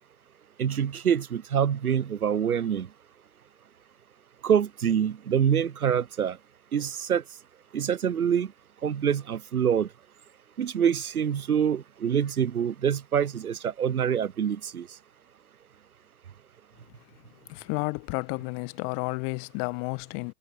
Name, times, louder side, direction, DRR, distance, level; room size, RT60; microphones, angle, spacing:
voice 1, 0.6-2.9 4.4-6.4 6.7-7.2 7.7-8.5 8.8-9.9 10.6-14.9, right 8 dB, 90° right, 0.6 m, -25 dB
voice 2, 17.5-20.3, left 40 dB or more, 40° left, 1.3 m, -31 dB
figure-of-eight pair, 95°, 43 cm